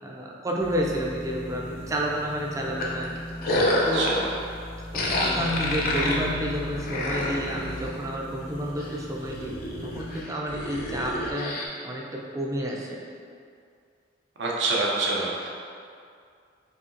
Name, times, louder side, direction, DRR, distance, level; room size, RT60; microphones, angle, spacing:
voice 1, 0.0-3.2 3.9-4.0 4.9-9.6 9.8-11.5 11.8-12.9, equal, 15° right, -2 dB, 0.4 m, -30 dB
sound 1, 0.6-10.2, left 1 dB, 85° left, 0.7 m, -37 dB
sound 2, 2.8-4.3 4.9-8.0 8.4-8.9 9.2-11.7, left 1 dB, 50° left, 0.5 m, -28 dB
voice 2, 3.7-4.3 14.4-15.5, right 2 dB, 65° right, -3 dB, 0.6 m, -26 dB
4.1 x 2.8 x 2.5 m, 2.3 s
head